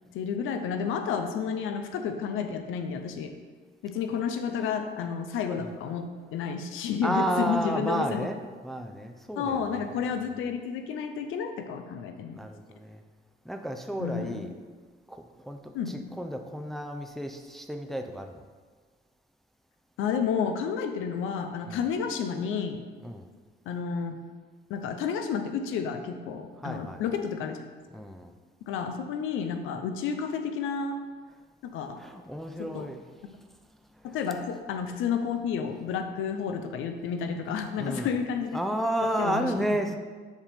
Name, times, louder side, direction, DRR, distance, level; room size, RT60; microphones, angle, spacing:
voice 1, 0.1-3.3 3.8-6.1 6.3-8.3 9.4-12.4 14.0-14.4 15.7-15.9 20.0-22.8 23.7-24.1 24.7-27.6 28.7-31.0 31.6-32.0 32.6-32.9 34.0-38.6 39.2-39.6, left 6 dB, 90° left, 6 dB, 0.7 m, -31 dB
voice 2, 7.0-9.9 12.3-13.0 13.4-14.5 15.1-18.4 21.7-21.8 23.0-23.3 26.6-27.0 27.9-28.3 32.0-33.0 34.0-34.2 37.8-38.1 38.5-40.0, right 1 dB, ahead, 5 dB, 0.5 m, -32 dB
7.2 x 3.5 x 5.7 m, 1.5 s
cardioid pair, 90°, 20 cm